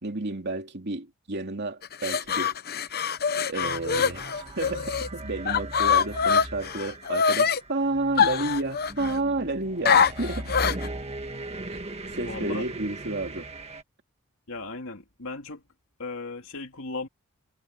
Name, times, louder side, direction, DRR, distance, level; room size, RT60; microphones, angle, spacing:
voice 1, 0.0-2.5 3.5-10.5 12.2-13.5, right 2 dB, 50° right, 2.8 m, -31 dB
sound 1, 1.8-5.1 5.5-7.6 8.2-9.2 9.9-10.9, left 6 dB, 45° left, 0.9 m, -24 dB
sound 2, 3.6-13.8, right 2 dB, 30° right, 1.8 m, -38 dB
voice 2, 12.1-12.7 14.5-15.6 16.0-17.1, left 3 dB, 65° left, 3.0 m, -36 dB
head